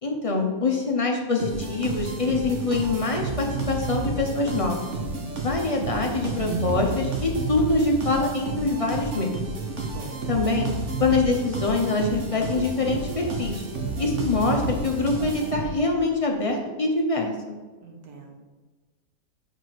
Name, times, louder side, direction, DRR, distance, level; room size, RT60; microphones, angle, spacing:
voice 1, 0.0-4.8 5.4-9.3 10.3-10.7 11.0-13.7 14.0-17.3, left 3 dB, 35° left, 1 dB, 0.5 m, -24 dB
sound 1, 1.4-16.0, right 3 dB, 55° right, 1.3 m, -31 dB
voice 2, 9.9-10.3 17.8-18.3, right 3 dB, 75° right, 1 dB, 1.6 m, -43 dB
4.6 x 4.5 x 6.0 m, 1.3 s
omnidirectional pair, 1.6 m